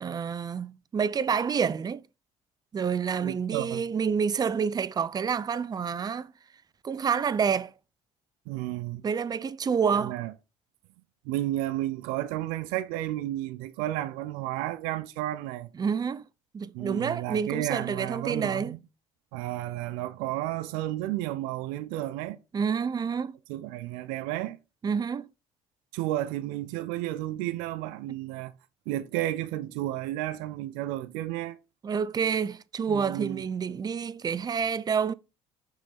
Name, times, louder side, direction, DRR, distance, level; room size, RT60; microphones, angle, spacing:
voice 1, 0.0-2.0 2.7-6.3 6.8-7.7 9.0-10.2 15.8-16.2 16.5-18.7 22.5-23.4 24.8-25.3 31.8-35.1, right 6 dB, 25° right, 0.5 m, -28 dB
voice 2, 3.2-3.8 8.5-9.0 9.9-10.3 11.2-15.7 16.7-18.8 19.3-22.4 23.5-24.6 25.9-28.5 28.9-31.6 32.9-33.4, right 15 dB, 80° right, 0.5 m, -32 dB
6.0 x 3.7 x 4.2 m
supercardioid pair, 70°, 15 cm